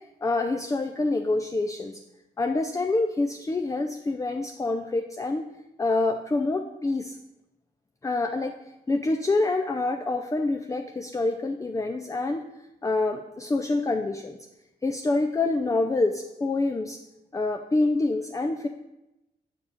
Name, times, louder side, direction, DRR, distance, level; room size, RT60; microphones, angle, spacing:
voice 1, 0.2-2.0 2.4-5.4 5.8-7.2 8.0-8.6 8.9-12.4 12.8-14.4 14.8-17.0 17.3-18.7, left 2 dB, 20° left, 4 dB, 0.4 m, -26 dB
7.0 x 4.7 x 4.9 m, 0.95 s
cardioid pair, 90°, 18 cm